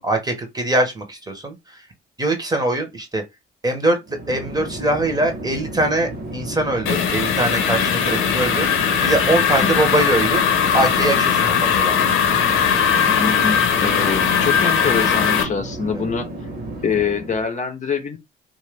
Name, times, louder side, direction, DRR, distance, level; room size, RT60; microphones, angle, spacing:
voice 1, 0.0-1.5 2.2-3.2 3.6-8.7 9.0-10.4 10.7-12.0 15.9-16.0, right 2 dB, 20° right, 1.0 m, -22 dB
Chatter / Fixed-wing aircraft airplane, 4.0-17.4, right 1 dB, 55° right, 1.2 m, -33 dB
sound 1, 6.9-15.4, left 7 dB, 85° left, 0.8 m, -19 dB
voice 2, 13.2-16.3 16.8-18.2, left 5 dB, 40° left, 0.7 m, -24 dB
2.5 x 2.5 x 3.3 m
cardioid pair, 90°, 20 cm